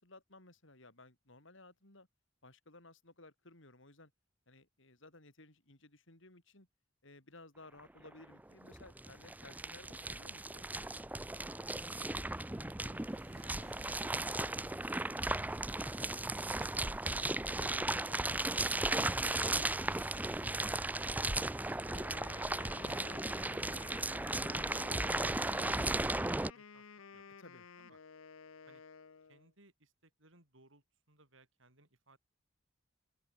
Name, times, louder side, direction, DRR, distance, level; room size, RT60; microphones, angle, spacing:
voice 1, 0.0-2.1 2.4-4.1 4.5-6.7 7.0-10.7 17.6-18.4 27.4-27.7, left 2 dB, 65° left, 5.2 m, -58 dB
sound 1, 7.8-7.9 8.1-26.5, right 2 dB, 10° right, 0.6 m, -36 dB
voice 2, 12.5-16.0 27.1-27.4 27.8-28.0 28.7-28.8 29.3-32.2, right 2 dB, 70° right, 7.1 m, -65 dB
Fireworks, 12.7-25.8, right 2 dB, 30° right, 6.4 m, -62 dB
Wind instrument woodwind instrument, 21.9-29.5, left 5 dB, 85° left, 0.9 m, -53 dB
open air
head